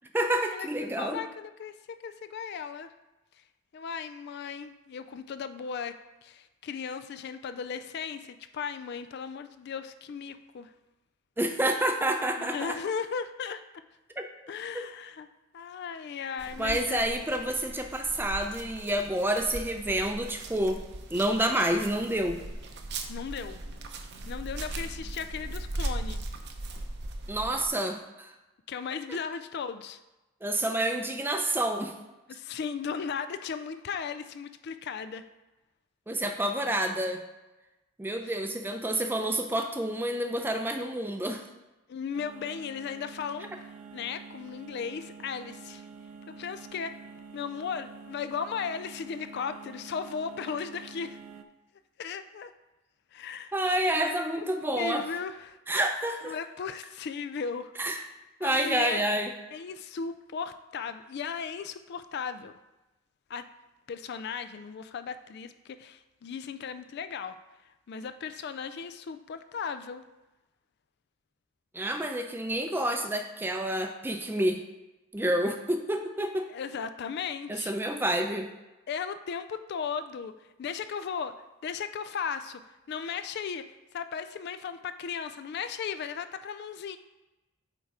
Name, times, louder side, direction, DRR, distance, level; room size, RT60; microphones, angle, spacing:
voice 1, 0.1-1.2 11.4-12.8 14.2-14.3 14.7-14.8 16.6-20.8 21.1-22.4 27.3-28.3 30.4-31.9 36.1-37.2 38.0-41.4 53.5-55.0 55.7-56.3 57.8-58.0 58.4-59.3 71.7-74.6 75.1-76.5 77.5-78.5, right 1 dB, 10° right, 5 dB, 0.5 m, -28 dB
voice 2, 1.0-2.9 3.7-10.7 12.4-13.6 14.5-15.3 15.5-17.1 23.1-23.6 24.3-26.2 28.7-30.0 32.3-35.2 38.2-38.4 41.9-45.9 46.3-47.0 47.3-51.2 52.0-52.5 53.1-53.5 53.9-54.2 54.8-55.6 56.2-58.1 58.4-59.1 59.5-62.5 63.3-63.5 63.9-67.4 67.9-70.0 76.5-77.7 78.9-80.3 80.6-82.6 82.9-83.6 83.9-87.0, left 6 dB, 50° left, 10 dB, 0.3 m, -36 dB
sound 1, 16.4-27.7, right 2 dB, 50° right, 0.7 m, -39 dB
sound 2, 42.1-51.4, right 5 dB, 90° right, 0.5 m, -48 dB
8.3 x 3.7 x 4.6 m, 1.0 s
head